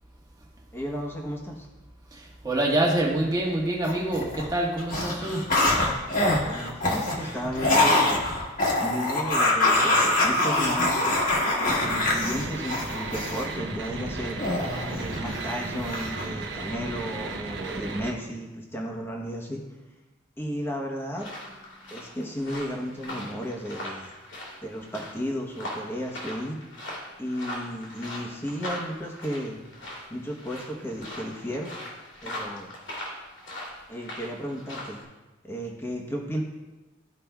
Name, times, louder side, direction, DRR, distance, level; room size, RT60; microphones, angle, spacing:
voice 1, 0.7-1.7 6.5-8.2 8.8-11.1 11.6-19.6 20.4-21.3 21.9-24.1 24.6-26.6 27.2-29.6 30.1-31.7 32.2-32.7 33.9-35.0 35.4-36.4, equal, 10° left, 0 dB, 0.9 m, -34 dB
voice 2, 2.1-5.4, right 1 dB, 20° right, -3 dB, 1.3 m, -26 dB
sound 1, 3.8-4.5 4.8-13.5 14.4-15.5 15.8-16.3, left 2 dB, 45° left, 1.4 m, -24 dB
sound 2, 11.8-18.1, right 3 dB, 65° right, 0.8 m, -35 dB
sound 3, 21.2-35.0, left 1 dB, 75° left, 2.4 m, -40 dB
14.0 x 5.0 x 2.3 m, 1.1 s
head